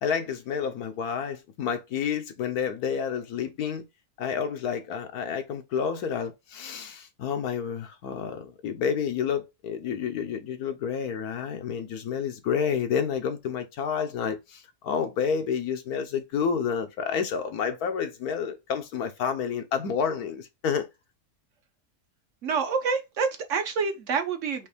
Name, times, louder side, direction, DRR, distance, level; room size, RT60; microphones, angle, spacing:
voice 1, 0.0-3.8 4.2-20.9, left 7 dB, 90° left, 1.4 m, -29 dB
voice 2, 22.4-24.7, right 5 dB, 60° right, 1.1 m, -27 dB
5.3 x 2.6 x 3.4 m
omnidirectional pair, 1.6 m